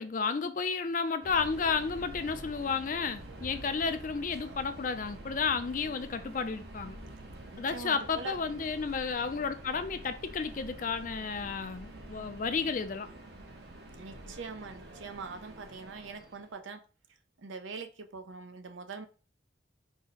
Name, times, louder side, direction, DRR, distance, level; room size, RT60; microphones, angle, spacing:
voice 1, 0.0-7.0 7.6-13.1, left 5 dB, 45° left, 0.4 m, -32 dB
Subway metro underground, 1.2-16.5, right 1 dB, 55° right, 0.8 m, -47 dB
voice 2, 7.5-8.4 14.0-16.8 17.4-19.1, right 4 dB, 85° right, 0.6 m, -43 dB
4.7 x 2.1 x 4.0 m
head